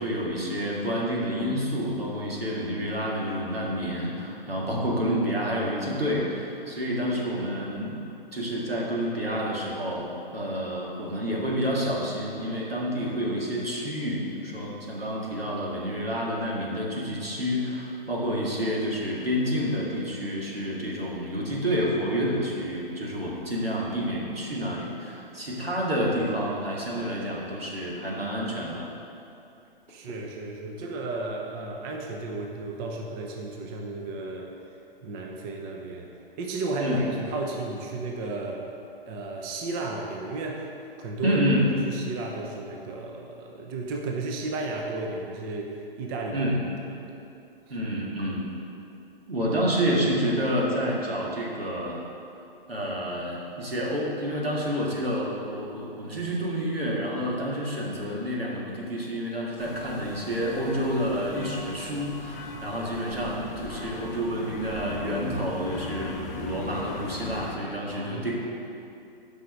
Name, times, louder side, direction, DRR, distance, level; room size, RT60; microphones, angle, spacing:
voice 1, 0.0-7.9 8.3-28.9 30.6-30.7 36.8-37.0 41.2-41.6 46.3-46.6 47.7-48.5 49.3-52.0 52.7-68.3, equal, 90° right, -4 dB, 2.2 m, -29 dB
voice 2, 29.9-34.5 35.0-36.1 36.4-38.7 39.1-40.7 41.0-41.4 41.8-46.5 46.8-47.2 47.7-47.8 62.5-62.8 67.9-68.3, right 3 dB, 25° right, 1 dB, 0.7 m, -34 dB
sound 1, 59.6-67.6, left 3 dB, 20° left, 0.4 m, -39 dB
7.7 x 5.4 x 6.4 m, 2.7 s
figure-of-eight pair, 130°, 29 cm